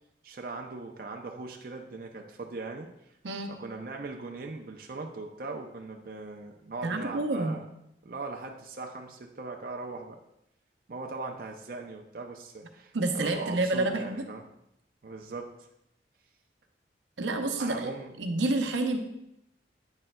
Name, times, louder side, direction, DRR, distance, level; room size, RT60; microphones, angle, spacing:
voice 1, 0.2-2.9 3.5-7.6 8.0-10.2 10.9-14.4 15.0-15.5 17.6-18.1, right 3 dB, 50° right, 2 dB, 0.5 m, -40 dB
voice 2, 6.8-7.6 12.9-14.2 17.2-17.9 18.2-19.0, right 2 dB, 90° right, 5 dB, 0.7 m, -28 dB
8.7 x 6.5 x 2.2 m, 0.82 s
head